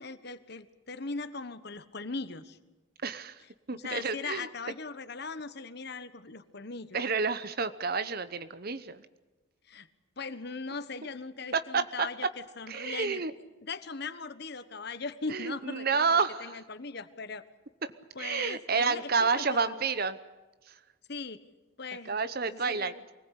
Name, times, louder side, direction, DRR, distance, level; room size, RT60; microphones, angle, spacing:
voice 1, 0.0-2.6 3.7-7.0 9.6-9.9 10.2-13.2 13.6-17.4 18.1-19.9 21.1-21.4 21.8-22.2 22.5-23.0, left 4 dB, 55° left, 13 dB, 1.3 m, -39 dB
voice 2, 3.0-3.4 3.7-4.5 6.9-9.0 11.5-12.1 12.7-13.3 15.3-16.5 18.2-20.2 22.1-22.9, right 5 dB, 50° right, 12 dB, 0.9 m, -29 dB
24.5 x 19.5 x 8.4 m, 1.2 s
head